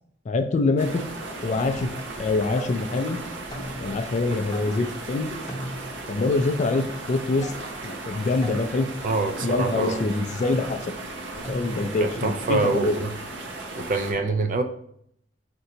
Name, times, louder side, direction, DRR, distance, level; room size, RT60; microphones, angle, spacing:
voice 1, 0.3-1.0 1.4-1.9 2.2-3.2 3.8-5.3 6.1-7.5 7.8-8.9 9.4-10.9 11.5-13.0, left 3 dB, 40° left, 9 dB, 0.3 m, -25 dB
sound 1, 0.8-14.1, right 2 dB, 75° right, 0.8 m, -36 dB
sound 2, 1.6-12.1, equal, 20° left, 0.8 m, -41 dB
voice 2, 9.0-10.0 12.0-13.1 13.8-14.6, right 3 dB, 45° right, 8 dB, 0.4 m, -25 dB
4.4 x 2.7 x 3.9 m, 0.69 s
head